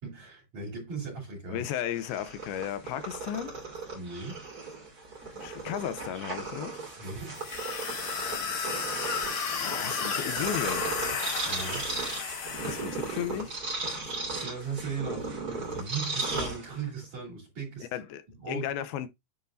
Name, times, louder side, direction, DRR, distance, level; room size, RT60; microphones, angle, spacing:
voice 1, 0.0-1.6 3.9-4.4 7.0-7.5 11.4-12.0 14.1-17.9 18.3-18.7, right 5 dB, 45° right, 4.9 m, -38 dB
voice 2, 1.5-3.6 5.3-6.8 9.5-10.9 12.6-13.6 17.9-19.1, left 10 dB, 80° left, 2.6 m, -35 dB
Purr, 1.9-17.0, right 3 dB, 30° right, 2.6 m, -36 dB
sound 1, 7.3-13.3, left 5 dB, 60° left, 3.1 m, -33 dB
10.0 x 4.4 x 2.6 m
omnidirectional pair, 4.5 m